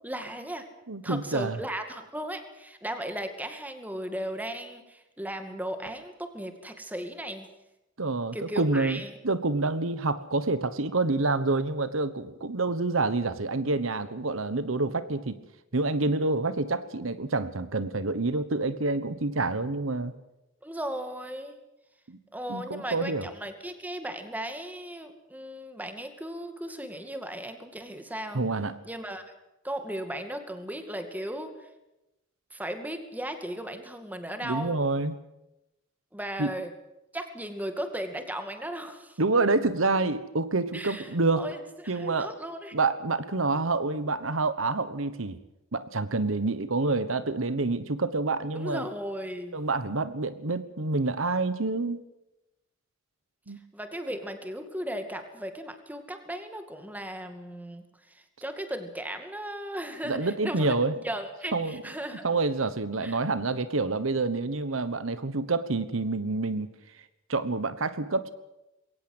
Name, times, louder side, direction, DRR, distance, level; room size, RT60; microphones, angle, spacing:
voice 1, 0.0-0.7 1.0-7.5 8.3-9.1 20.6-21.6 22.3-28.4 28.9-29.3 29.6-31.5 32.5-34.8 36.1-36.7 37.1-39.2 40.7-42.8 48.5-49.6 53.7-60.7 61.0-62.3 63.0-63.2, right 1 dB, 10° right, 7 dB, 2.3 m, -36 dB
voice 2, 0.9-1.6 8.0-15.4 15.7-20.1 22.1-22.2 22.5-23.3 28.3-28.7 34.4-35.2 36.4-36.5 39.2-41.5 41.9-42.3 42.7-45.4 45.7-48.8 49.5-52.0 53.5-53.6 60.1-60.9 61.5-61.8 62.2-66.7 67.3-68.3, right 3 dB, 80° right, 13 dB, 1.2 m, -27 dB
22.0 x 18.0 x 8.0 m, 0.92 s
head